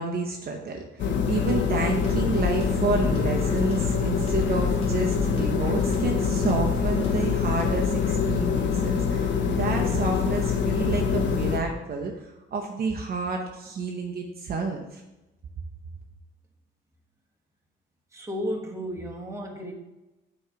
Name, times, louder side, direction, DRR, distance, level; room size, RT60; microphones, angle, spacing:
voice 1, 0.0-15.0, right 4 dB, 50° right, 1 dB, 0.8 m, -30 dB
sound 1, 1.0-11.6, left 6 dB, 65° left, 0.8 m, -25 dB
sound 2, 1.5-7.8, left 1 dB, 30° left, 1.7 m, -33 dB
voice 2, 18.1-19.7, equal, 15° right, 0 dB, 1.2 m, -33 dB
6.6 x 3.1 x 4.8 m, 0.99 s
cardioid pair, 90°, 20 cm